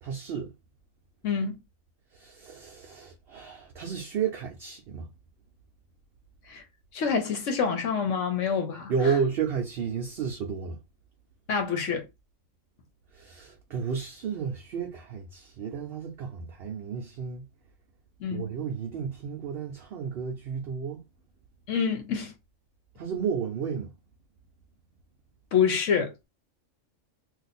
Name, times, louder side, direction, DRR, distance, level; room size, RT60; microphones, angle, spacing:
voice 1, 0.0-0.5 2.1-5.1 8.9-10.8 13.1-17.5 18.3-21.0 23.0-23.9, right 6 dB, 60° right, 0.7 m, -32 dB
voice 2, 1.2-1.6 6.5-6.6 6.9-9.2 11.5-12.1 18.2-18.5 21.7-22.3 25.5-26.1, left 6 dB, 70° left, 1.0 m, -27 dB
2.6 x 2.4 x 4.0 m
omnidirectional pair, 1.4 m